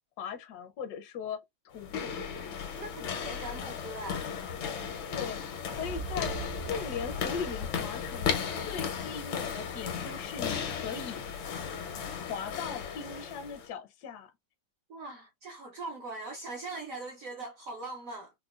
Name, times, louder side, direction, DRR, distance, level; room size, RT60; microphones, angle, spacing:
voice 1, 0.2-1.4 1.6-2.1 5.1-6.4 6.7-8.4 8.6-11.2 12.3-14.3, left 6 dB, 70° left, 0.9 m, -39 dB
sound 1, 1.7-13.7, left 7 dB, 90° left, 1.7 m, -35 dB
voice 2, 2.8-4.3 14.9-18.3, right 2 dB, 70° right, 0.8 m, -41 dB
sound 2, 5.7-9.6, right 4 dB, 90° right, 1.4 m, -43 dB
4.8 x 2.1 x 2.3 m
omnidirectional pair, 2.1 m